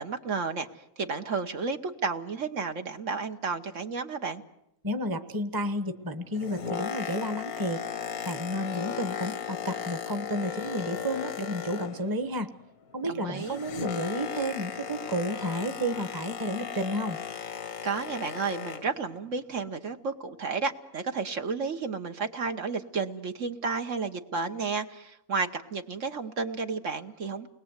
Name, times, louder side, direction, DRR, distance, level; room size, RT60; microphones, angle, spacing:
voice 1, 0.0-4.4 13.1-13.6 17.8-27.5, right 4 dB, 60° right, 6 dB, 1.5 m, -32 dB
voice 2, 4.8-7.8 8.2-12.5 12.9-17.2, equal, 15° right, 9 dB, 1.1 m, -31 dB
Boat Water vehicle, 6.2-12.3 12.6-19.0 19.7-19.8, left 8 dB, 85° left, 1.7 m, -36 dB
29.5 x 21.0 x 8.2 m, 0.82 s
omnidirectional pair, 1.5 m